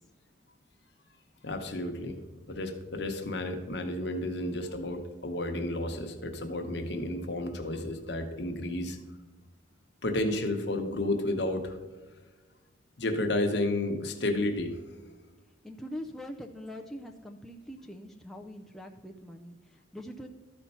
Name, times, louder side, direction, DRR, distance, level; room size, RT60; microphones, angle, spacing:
voice 1, 1.4-2.2 2.5-9.0 10.0-11.8 13.0-14.8, left 1 dB, 60° left, 5 dB, 1.0 m, -31 dB
voice 2, 15.6-20.3, equal, ahead, 2 dB, 0.4 m, -43 dB
12.5 x 4.4 x 5.5 m, 1.3 s
head